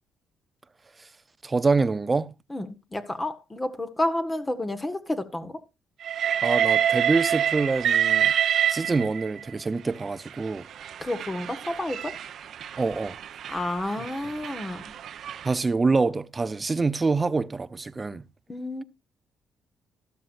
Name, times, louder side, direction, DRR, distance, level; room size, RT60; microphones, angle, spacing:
voice 1, 1.4-2.3 6.4-8.3 8.7-10.7 12.8-13.2 15.4-18.2, right 3 dB, 25° right, 0.7 m, -25 dB
voice 2, 2.5-5.6 11.0-12.2 13.5-14.8 18.5-18.8, left 1 dB, 20° left, 1.4 m, -30 dB
Train, 6.0-9.4 10.3-15.5, right 9 dB, 65° right, 1.0 m, -27 dB
13.0 x 12.5 x 2.6 m
cardioid pair, 95°, 0 cm